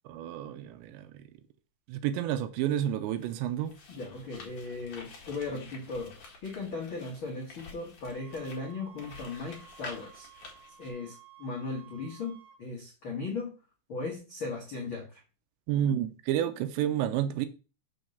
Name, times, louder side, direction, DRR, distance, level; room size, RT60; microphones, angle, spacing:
voice 1, 0.1-1.2 1.9-3.7 15.7-17.5, right 11 dB, 80° right, 2.8 m, -30 dB
sound 1, 3.1-10.9, left 4 dB, 55° left, 1.8 m, -49 dB
voice 2, 3.9-10.3 10.8-13.5 13.9-15.2, left 3 dB, 85° left, 1.1 m, -37 dB
sound 2, 8.0-12.6, right 11 dB, 20° left, 2.2 m, -55 dB
6.4 x 4.5 x 6.5 m
omnidirectional pair, 5.3 m